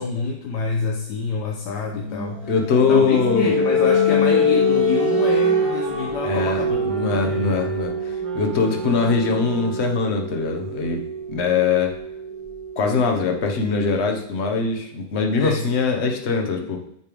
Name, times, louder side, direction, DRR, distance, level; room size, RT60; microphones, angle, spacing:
voice 1, 0.0-2.5 2.9-7.7 15.4-15.6, left 5 dB, 85° left, 1 dB, 1.4 m, -27 dB
sound 1, 2.0-13.6, left 1 dB, 25° right, 1.0 m, -24 dB
voice 2, 2.5-3.5 6.2-11.0 11.3-11.9 12.8-16.8, left 5 dB, 45° left, 3 dB, 1.2 m, -22 dB
sound 2, 6.3-10.1, right 2 dB, 80° right, 1.8 m, -38 dB
8.3 x 3.3 x 5.2 m, 0.73 s
omnidirectional pair, 1.8 m